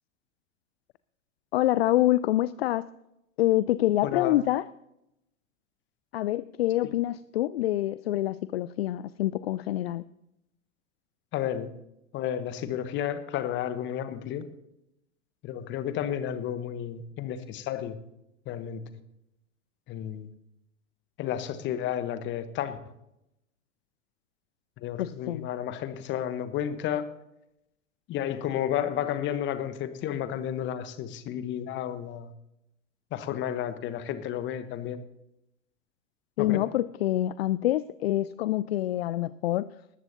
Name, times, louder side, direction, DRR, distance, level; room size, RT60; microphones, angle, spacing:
voice 1, 1.5-2.9 3.4-4.7 6.1-10.0 25.0-25.5 36.4-39.7, left 14 dB, 55° left, 18 dB, 0.5 m, -26 dB
voice 2, 4.0-4.4 11.3-11.7 12.1-14.4 15.4-18.0 18.5-18.9 19.9-20.3 21.2-22.8 24.8-27.1 28.1-32.3 33.1-35.0 36.4-36.6, left 10 dB, 30° left, 12 dB, 1.1 m, -32 dB
19.5 x 14.0 x 2.8 m, 0.85 s
figure-of-eight pair, 90°, 38 cm